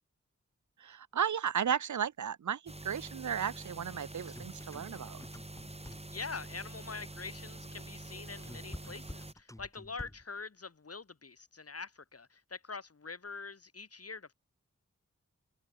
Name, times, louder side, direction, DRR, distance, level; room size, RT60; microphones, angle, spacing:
voice 1, 0.8-5.2, right 8 dB, 80° right, 0.7 m, -34 dB
sound 1, 2.7-9.3, right 2 dB, 20° right, 3.2 m, -46 dB
sound 2, 4.2-6.3 7.9-10.4, left 1 dB, 10° left, 2.2 m, -49 dB
voice 2, 6.1-14.3, left 4 dB, 55° left, 2.3 m, -44 dB
wide cardioid pair, 75°, 29 cm